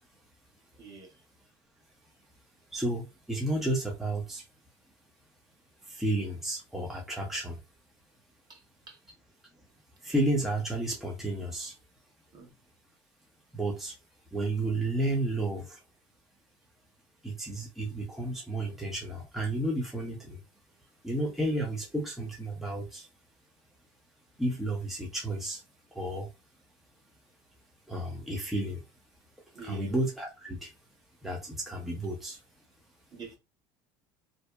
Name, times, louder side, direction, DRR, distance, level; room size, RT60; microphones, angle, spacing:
voice 1, 0.8-1.2 8.5-9.0 12.3-12.5 29.5-30.0 33.1-33.4, right 5 dB, 40° right, 1.1 m, -46 dB
voice 2, 2.7-4.4 5.8-7.6 10.0-11.8 13.5-14.0 14.3-15.8 17.2-20.4 21.0-23.1 24.4-25.6 25.9-26.3 27.9-28.8 29.5-30.7 31.2-32.4, right 1 dB, ahead, 0.6 m, -32 dB
2.7 x 2.1 x 2.2 m
supercardioid pair, 100°, 10 cm